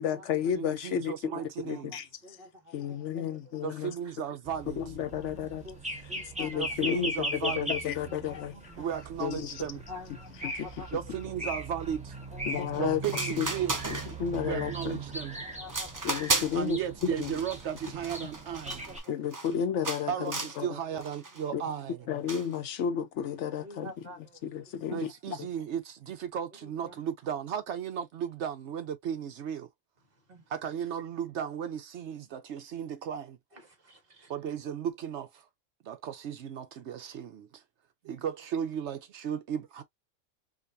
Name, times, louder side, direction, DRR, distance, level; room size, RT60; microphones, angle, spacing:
voice 1, 0.0-1.1 1.6-2.1 2.7-3.9 4.8-5.7 6.4-8.5 9.2-9.6 10.4-10.7 12.4-13.0 13.4-13.5 13.9-15.0 16.0-17.4 19.1-20.7 21.5-21.6 22.1-23.9 24.4-25.5, left 8 dB, 70° left, 1.0 m, -32 dB
voice 2, 0.5-2.0 3.6-4.8 6.6-7.7 8.8-9.8 10.9-12.1 12.8-13.8 14.4-15.4 16.5-18.8 20.1-22.1 24.9-29.7 30.5-33.4 34.3-35.4 35.8-37.6 38.0-39.8, right 8 dB, 70° right, 0.9 m, -35 dB
voice 3, 1.2-3.8 4.0-4.2 5.0-6.7 8.1-8.2 8.5-8.9 9.7-11.0 12.3-12.9 13.5-13.6 15.3-16.2 18.0-18.1 18.6-19.3 20.6-21.5 23.6-25.0 26.5-27.0 30.0-30.5 33.5-34.3, left 1 dB, 50° right, 1.8 m, -50 dB
sound 1, 4.4-19.0, right 1 dB, 5° right, 1.1 m, -39 dB
sound 2, 12.7-12.8 13.0-14.4 14.8-15.2 15.7-16.7 17.0-19.5 19.8-20.6 21.0-21.4 22.3-22.5, right 3 dB, 30° right, 0.4 m, -35 dB
5.1 x 2.3 x 2.5 m
omnidirectional pair, 1.3 m